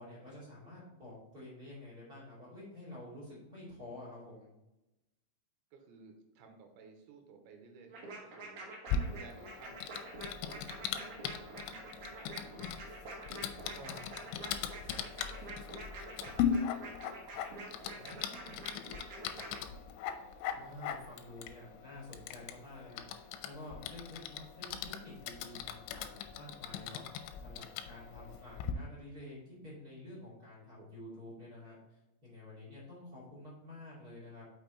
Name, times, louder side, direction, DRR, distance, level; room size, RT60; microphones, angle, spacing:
voice 1, 0.0-4.5 13.7-14.0 18.0-18.6 20.5-23.1 23.4-34.4, left 1 dB, 30° right, -6 dB, 2.1 m, -50 dB
voice 2, 5.7-8.6 9.1-9.9 10.2-12.8 13.6-15.6 15.9-17.2 18.0-19.2 30.1-30.5 30.8-31.0, right 4 dB, 80° right, 3 dB, 3.3 m, -57 dB
sound 1, 7.9-19.6, right 2 dB, 60° right, 2.1 m, -47 dB
Typing, 8.9-28.7, left 8 dB, 90° left, 3.0 m, -40 dB
6.8 x 5.7 x 4.0 m, 0.95 s
omnidirectional pair, 5.3 m